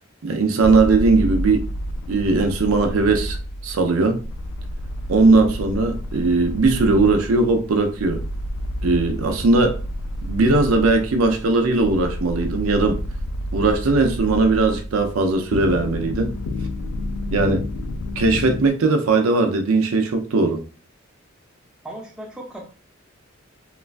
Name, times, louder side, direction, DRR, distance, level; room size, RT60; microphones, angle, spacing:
voice 1, 0.2-1.6 2.1-3.4 3.6-4.2 5.1-8.2 8.8-9.8 10.2-13.0 13.5-16.3 17.3-17.6 18.2-20.6, right 3 dB, 85° right, 0.5 m, -19 dB
sound 1, 0.6-18.7, left 1 dB, 65° left, 0.3 m, -29 dB
voice 2, 21.8-22.6, right 1 dB, 5° right, 0.6 m, -36 dB
3.0 x 2.2 x 2.4 m
head